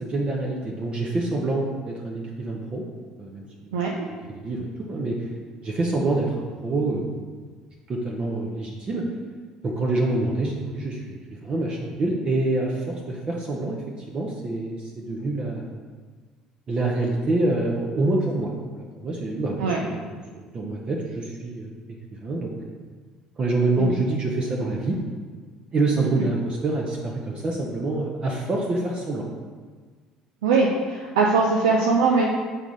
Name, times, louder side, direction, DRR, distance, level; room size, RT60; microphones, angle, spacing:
voice 1, 0.0-2.8 3.2-3.4 4.3-5.2 5.6-7.1 7.9-9.0 9.6-11.2 11.4-13.8 14.1-15.7 16.7-21.7 22.2-22.8 23.4-25.0 25.7-29.3, right 2 dB, 35° right, -1 dB, 0.9 m, -26 dB
voice 2, 3.7-4.1 19.6-19.8 23.8-23.9 26.0-26.3 30.4-32.2, right 4 dB, 75° right, -1 dB, 0.5 m, -21 dB
7.1 x 3.6 x 4.0 m, 1.5 s
figure-of-eight pair, 60°, 3 cm